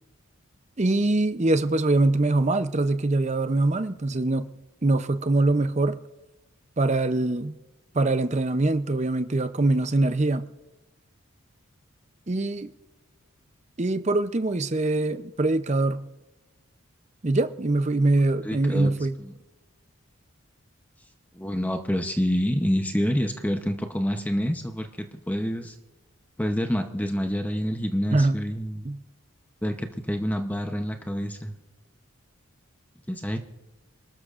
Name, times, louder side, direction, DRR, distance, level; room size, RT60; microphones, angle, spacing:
voice 1, 0.8-4.5 4.8-6.0 6.8-7.5 7.9-10.5 12.3-12.7 13.8-16.0 17.2-19.2 28.1-28.4 28.8-29.0, right 2 dB, 30° right, 10 dB, 0.6 m, -23 dB
voice 2, 18.4-18.9 19.2-19.3 21.3-25.8 26.4-28.9 29.6-31.6 33.1-33.4, equal, 5° left, 5 dB, 0.7 m, -27 dB
27.0 x 13.0 x 2.5 m, 1.0 s
head